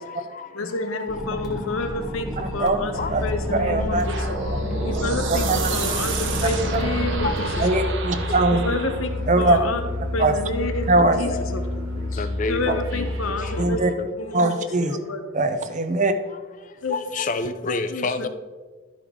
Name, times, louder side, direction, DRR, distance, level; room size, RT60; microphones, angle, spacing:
voice 1, 0.5-4.4 4.8-8.1 8.5-9.8 10.1-11.8 12.1-14.5 14.9-15.2 16.8-17.0 17.9-18.3, left 2 dB, 75° left, 7 dB, 0.9 m, -29 dB
sound 1, 1.1-7.6, equal, 5° right, 0.8 m, -33 dB
voice 2, 2.4-2.8 3.1-3.2 3.5-4.1 5.5-5.7 6.7-6.8 7.6-8.6 9.3-9.6 10.2-10.4 10.9-11.2 13.6-13.9 14.3-15.0 15.3-16.1, right 2 dB, 35° right, 9 dB, 0.6 m, -21 dB
sound 2, 2.9-13.6, left 1 dB, 80° right, 1.3 m, -29 dB
sound 3, 4.1-9.1, right 4 dB, 60° right, 0.9 m, -30 dB
voice 3, 7.2-7.5 11.0-11.5 12.2-13.1 16.9-18.3, left 3 dB, 35° left, 11 dB, 0.4 m, -28 dB
11.5 x 5.1 x 3.6 m, 1.4 s
head